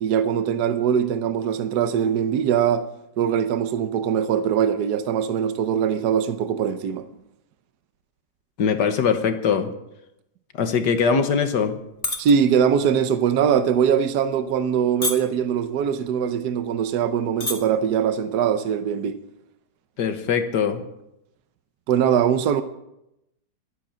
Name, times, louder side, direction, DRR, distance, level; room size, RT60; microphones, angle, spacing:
voice 1, 0.0-2.8 3.2-7.0 12.2-19.2 21.9-22.6, right 8 dB, 70° right, 1.3 m, -22 dB
voice 2, 8.6-9.7 10.5-11.8 20.0-20.8, left 6 dB, 80° left, 1.9 m, -22 dB
sound 1, 11.8-12.3 12.7-13.0 13.6-13.8 14.5-14.8 15.0-15.5 16.3-16.4 16.6-16.7 17.2-17.5 17.9-18.2, left 2 dB, 20° left, 1.5 m, -27 dB
12.0 x 10.5 x 7.5 m
omnidirectional pair, 1.8 m